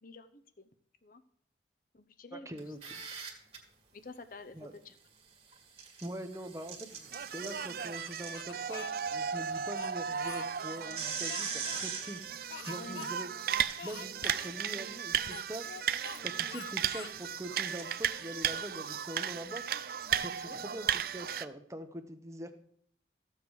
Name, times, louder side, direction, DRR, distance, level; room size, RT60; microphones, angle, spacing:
voice 1, 0.0-0.7 1.0-1.2 1.9-2.7 3.9-5.0 12.8-13.1 20.4-20.6, left 3 dB, 50° left, 10 dB, 0.8 m, -49 dB
voice 2, 2.3-3.0 4.5-4.7 6.0-12.2 12.6-13.3 13.8-15.9 16.2-19.6 20.2-22.5, right 1 dB, 15° right, 7 dB, 0.9 m, -43 dB
sound 1, 2.6-3.6 5.5-9.1 9.5-9.6 10.1-19.3, right 6 dB, 35° right, 1.9 m, -44 dB
sound 2, 7.0-21.4, right 8 dB, 55° right, 0.4 m, -35 dB
Speech, 7.5-8.9 9.5-10.8 11.3-11.9 12.5-13.1 13.4-13.5 13.8-14.5 15.2-16.2 16.5-17.2 17.7-19.0, left 7 dB, 75° left, 0.5 m, -47 dB
14.5 x 7.3 x 4.8 m, 0.65 s
head